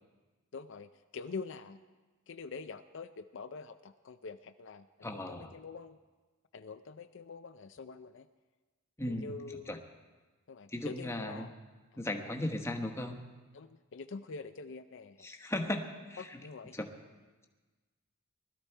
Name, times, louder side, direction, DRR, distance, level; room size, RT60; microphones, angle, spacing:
voice 1, 0.5-1.8 2.3-6.0 6.5-8.3 9.1-9.8 10.5-11.5 11.9-12.3 13.5-15.3 16.2-16.8, left 4 dB, 65° left, 9 dB, 0.5 m, -45 dB
voice 2, 5.0-5.5 9.0-9.3 9.7-9.8 10.7-11.5 12.0-13.2 15.2-16.4 16.7-16.9, left 1 dB, 15° left, 3 dB, 1.1 m, -36 dB
20.0 x 13.0 x 4.5 m, 1.3 s
head